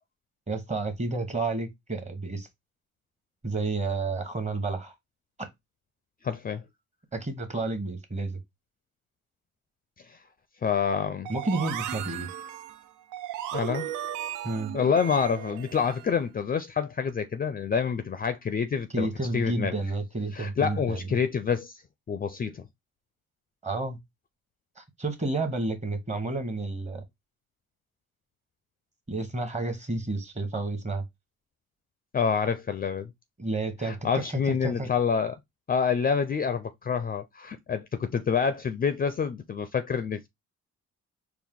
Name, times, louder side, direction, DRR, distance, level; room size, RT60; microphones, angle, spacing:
voice 1, 0.5-2.5 3.4-4.9 7.1-8.4 11.3-12.3 14.4-14.7 18.9-21.1 23.6-24.0 24.8-27.0 29.1-31.0 33.4-34.9, right 3 dB, 25° right, 1.0 m, -31 dB
voice 2, 6.2-6.6 10.1-10.2 10.6-11.3 13.5-13.9 14.7-19.1 19.3-19.7 20.3-21.8 22.1-22.6 32.1-33.1 33.8-35.4 35.7-40.3, left 6 dB, 30° left, 0.4 m, -27 dB
sound 1, 11.2-16.2, right 11 dB, 85° right, 0.5 m, -36 dB
4.5 x 2.1 x 3.5 m
cardioid pair, 90°, 30 cm